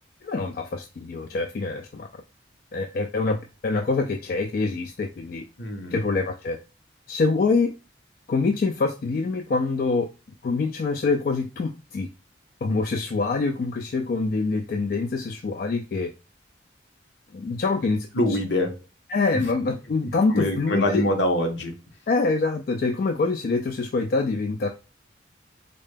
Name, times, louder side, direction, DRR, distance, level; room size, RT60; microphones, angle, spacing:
voice 1, 0.2-2.1 2.7-5.4 5.9-6.6 7.1-7.7 8.3-10.1 10.4-12.1 12.6-16.1 17.3-18.1 19.1-21.0 22.1-24.7, left 3 dB, 50° left, 0.3 m, -25 dB
voice 2, 5.6-6.0 18.1-18.7 19.3-19.4 20.3-21.7, left 1 dB, 75° left, 1.0 m, -24 dB
3.9 x 2.1 x 3.3 m
head